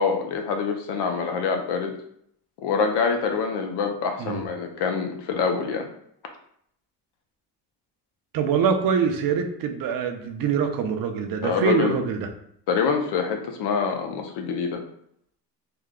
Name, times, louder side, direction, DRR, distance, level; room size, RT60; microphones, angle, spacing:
voice 1, 0.0-2.0 2.6-5.9 11.4-12.0 12.7-14.8, left 5 dB, 80° left, 4 dB, 0.8 m, -25 dB
voice 2, 8.3-12.3, right 6 dB, 55° right, 6 dB, 0.6 m, -24 dB
3.4 x 2.2 x 3.6 m, 0.69 s
cardioid pair, 130°, 40 cm